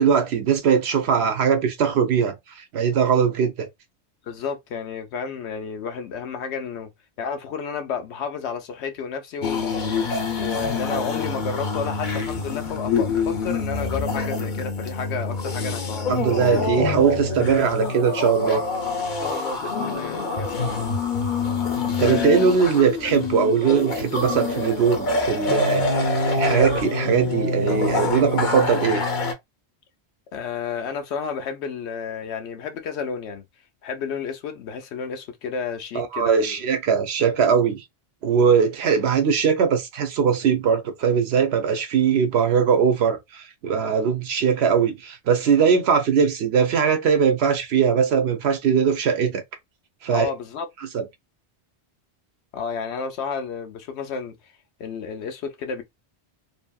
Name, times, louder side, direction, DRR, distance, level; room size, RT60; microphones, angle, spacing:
voice 1, 0.0-3.7 16.1-18.6 22.0-29.0 35.9-37.8 38.2-49.4 50.0-50.3 50.9-51.1, right 6 dB, 70° right, 0.9 m, -20 dB
voice 2, 4.3-6.9 7.2-9.9 10.4-16.2 19.1-20.9 22.0-22.5 22.8-23.1 30.3-33.4 33.8-36.5 50.1-50.7 52.5-54.4 54.8-55.8, left 6 dB, 85° left, 0.9 m, -31 dB
sound 1, 9.4-29.3, left 3 dB, 50° left, 0.7 m, -25 dB
2.7 x 2.6 x 2.3 m
omnidirectional pair, 1.1 m